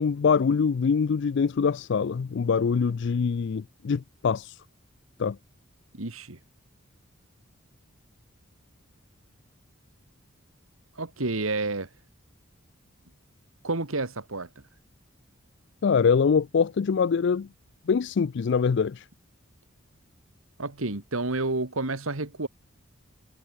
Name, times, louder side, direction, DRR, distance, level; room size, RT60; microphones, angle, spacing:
voice 1, 0.0-4.6 5.2-5.4 15.8-17.5 17.9-19.0, left 6 dB, 55° left, 0.4 m, -24 dB
voice 2, 5.9-6.4 11.0-11.9 13.6-14.5 20.6-22.5, right 2 dB, 80° right, 2.1 m, -30 dB
head